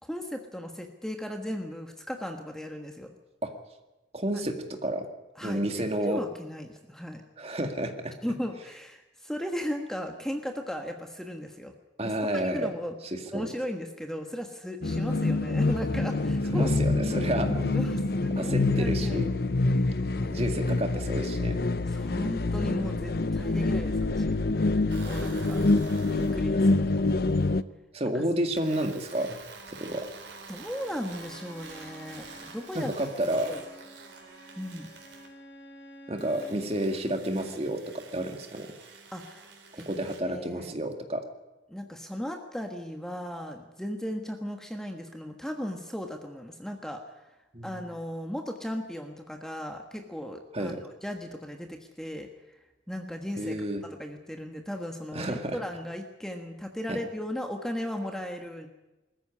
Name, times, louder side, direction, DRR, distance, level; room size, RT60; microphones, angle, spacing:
voice 1, 0.0-3.1 4.3-4.4 5.4-7.2 8.2-11.7 12.0-12.9 13.3-16.7 17.7-19.2 19.8-20.6 21.9-24.3 25.0-25.6 26.1-26.9 28.0-28.3 30.5-32.9 33.5-33.6 34.6-34.9 39.1-40.7 41.7-47.3 47.6-52.6 52.9-53.6 53.8-58.7, equal, 5° left, 3 dB, 1.4 m, -36 dB
voice 2, 4.1-5.1 5.4-6.2 7.4-8.1 12.0-12.7 13.1-13.5 16.5-19.3 20.3-21.6 27.9-29.4 29.7-30.1 32.8-33.5 36.1-38.7 39.9-41.2 47.5-47.7 50.5-50.8 53.4-53.8 55.1-55.6 56.9-57.0, right 1 dB, 35° right, 5 dB, 2.0 m, -30 dB
sound 1, 14.8-27.6, left 2 dB, 55° left, 0.6 m, -26 dB
sound 2, 24.9-26.5 28.6-35.3 36.2-40.2, right 4 dB, 70° right, 3.8 m, -48 dB
Bowed string instrument, 30.6-36.7, equal, 75° left, 3.6 m, -51 dB
21.0 x 14.0 x 9.7 m, 1.1 s
head